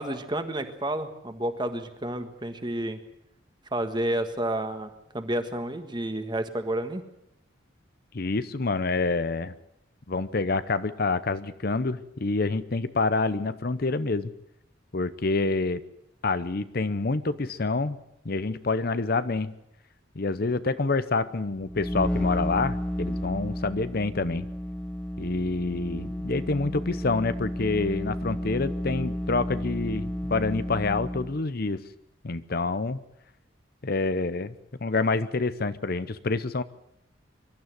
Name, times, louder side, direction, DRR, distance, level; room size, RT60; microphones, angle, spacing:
voice 1, 0.0-3.0 3.7-7.0, right 1 dB, 25° right, 8 dB, 1.6 m, -30 dB
voice 2, 8.1-9.5 10.1-14.3 14.9-15.8 16.2-18.0 18.2-19.5 20.2-24.5 25.2-31.8 32.2-33.0 33.8-34.5 34.8-36.6, left 3 dB, 50° left, 14 dB, 0.8 m, -27 dB
sound 1, 21.5-31.4, equal, 5° left, 0.7 m, -32 dB
23.5 x 12.5 x 9.3 m, 0.83 s
head